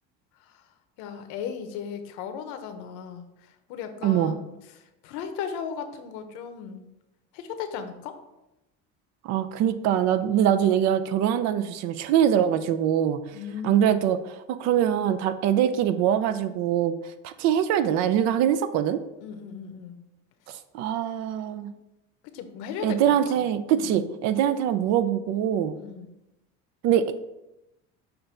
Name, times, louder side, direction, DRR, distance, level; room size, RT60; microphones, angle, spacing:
voice 1, 1.0-6.9 7.3-8.2 13.3-14.1 19.2-20.0 21.3-21.6 22.3-24.1 25.7-26.1, left 7 dB, 75° left, 8 dB, 0.9 m, -37 dB
voice 2, 4.0-4.4 9.2-13.2 13.6-14.2 14.6-16.9 17.2-19.0 20.5-21.7 22.8-25.8 26.8-27.2, right 10 dB, 60° right, 11 dB, 0.5 m, -23 dB
6.7 x 2.6 x 5.6 m, 0.94 s
cardioid pair, 120°, 30 cm